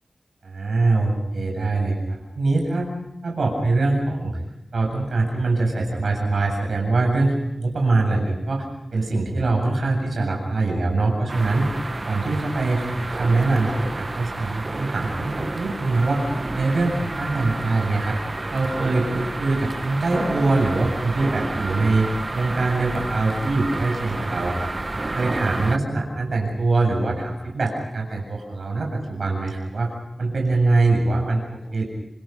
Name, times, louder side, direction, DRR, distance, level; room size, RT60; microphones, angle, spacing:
voice 1, 0.4-2.9 3.2-4.4 4.7-8.6 8.9-11.7 12.0-16.2 16.5-18.2 18.5-24.7 25.1-29.9 30.2-31.8, right 3 dB, 80° right, 0 dB, 7.7 m, -23 dB
sound 1, 11.3-25.8, right 2 dB, 40° right, 1.3 m, -30 dB
28.0 x 26.5 x 5.3 m, 0.87 s
wide cardioid pair, 55°, 0 cm